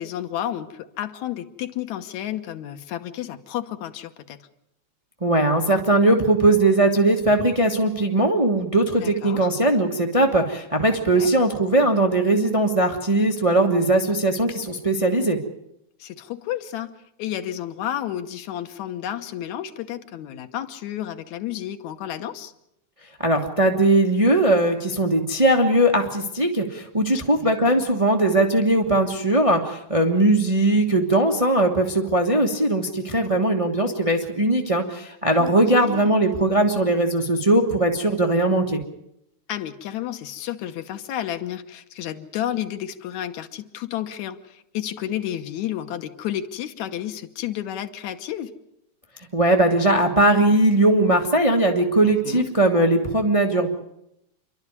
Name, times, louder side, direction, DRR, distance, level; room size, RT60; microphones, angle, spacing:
voice 1, 0.0-4.4 9.0-9.5 11.1-11.3 16.0-16.9 17.2-22.5 27.1-27.9 35.4-36.4 39.5-48.5 52.0-52.5, left 11 dB, 75° left, 8 dB, 2.3 m, -31 dB
voice 2, 5.2-15.4 23.2-38.8 49.3-53.7, right 1 dB, 60° right, 3 dB, 0.3 m, -19 dB
27.5 x 12.0 x 9.6 m, 0.81 s
omnidirectional pair, 3.4 m